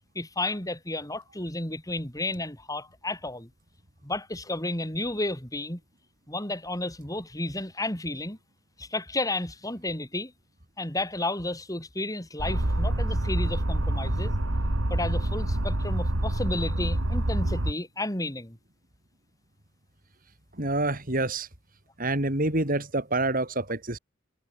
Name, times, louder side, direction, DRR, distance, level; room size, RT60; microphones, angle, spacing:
voice 1, 0.1-3.5 4.0-5.8 6.3-8.4 8.8-10.3 10.8-14.3 14.9-18.6, left 2 dB, 15° left, 6.1 m, -32 dB
sound 1, 12.4-17.7, right 1 dB, 80° right, 2.4 m, -27 dB
voice 2, 20.6-21.5 22.0-24.0, right 2 dB, 45° right, 4.5 m, -27 dB
head